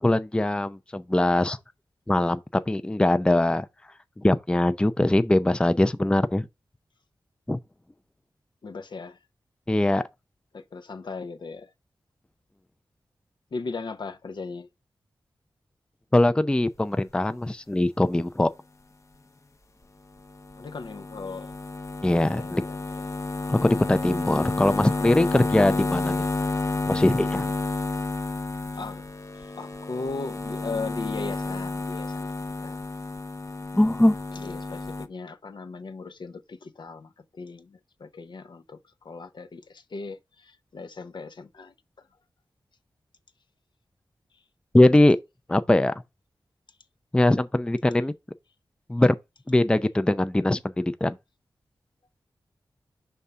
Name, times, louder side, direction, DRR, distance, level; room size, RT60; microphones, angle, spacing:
voice 1, 0.0-1.6 2.1-3.7 4.2-6.5 7.5-7.6 9.7-10.0 16.1-18.5 22.0-22.6 23.5-26.2 26.9-27.5 33.7-34.1 44.7-45.2 45.5-45.9 47.1-48.1 48.9-49.2 49.5-51.2, left 1 dB, 10° left, 0.4 m, -21 dB
voice 2, 8.6-9.2 10.5-11.7 13.5-14.7 20.6-21.5 22.3-23.1 28.7-29.0 29.3-32.3 32.6-32.8 34.3-41.7, left 4 dB, 65° left, 0.8 m, -38 dB
sound 1, 20.2-35.1, left 3 dB, 40° left, 0.7 m, -31 dB
5.4 x 3.6 x 5.5 m
cardioid pair, 60°, 8 cm